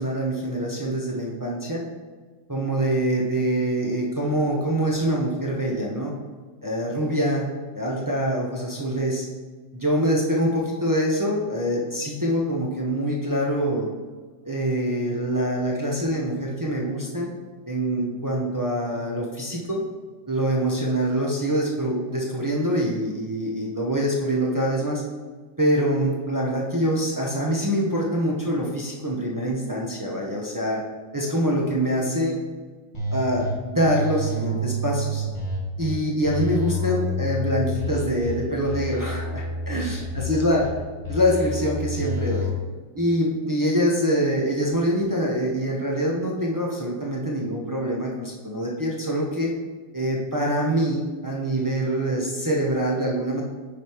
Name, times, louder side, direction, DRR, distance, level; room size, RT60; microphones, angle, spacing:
voice 1, 0.0-1.8 2.5-6.1 6.6-7.5 7.7-9.3 9.7-13.9 14.4-17.3 17.7-19.8 20.3-25.0 25.6-30.8 31.1-32.4 33.1-35.2 35.8-40.7 41.1-42.5 42.9-49.5 49.9-53.4, equal, 30° right, -3 dB, 0.4 m, -25 dB
sound 1, 32.9-33.5 33.8-35.9 36.2-38.3 38.6-40.7 41.0-42.5, left 1 dB, 15° left, 1.6 m, -29 dB
10.0 x 3.5 x 4.4 m, 1.4 s
omnidirectional pair, 2.0 m